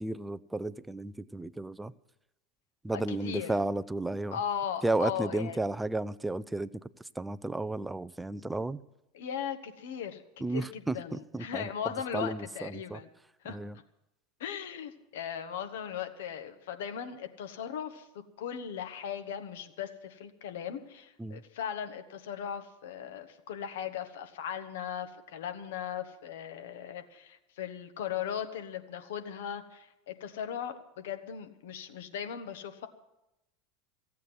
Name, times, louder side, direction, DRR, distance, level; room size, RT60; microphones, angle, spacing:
voice 1, 0.0-1.9 2.8-4.4 4.8-6.7 7.2-8.8 10.4-11.7 12.1-13.0 13.5-13.7 21.2-21.4, right 2 dB, 10° right, 16 dB, 0.5 m, -33 dB
voice 2, 3.1-3.5 4.3-5.6 9.1-10.2 10.5-13.1 13.4-13.6 14.4-32.9, left 8 dB, 70° left, 8 dB, 1.3 m, -38 dB
15.5 x 8.3 x 9.4 m, 0.90 s
figure-of-eight pair, 80°, 0 cm